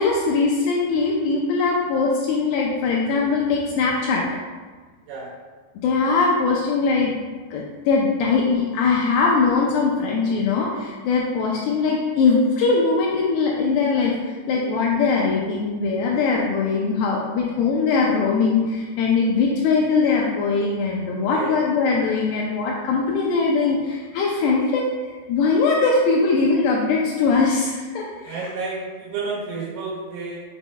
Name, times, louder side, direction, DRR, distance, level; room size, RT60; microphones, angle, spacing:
voice 1, 0.0-4.2 5.8-7.1 7.5-24.9 25.3-28.4, left 4 dB, 80° left, -2 dB, 2.4 m, -21 dB
voice 2, 28.2-30.4, right 3 dB, 75° right, -6 dB, 3.9 m, -30 dB
6.7 x 6.2 x 2.2 m, 1.4 s
omnidirectional pair, 5.2 m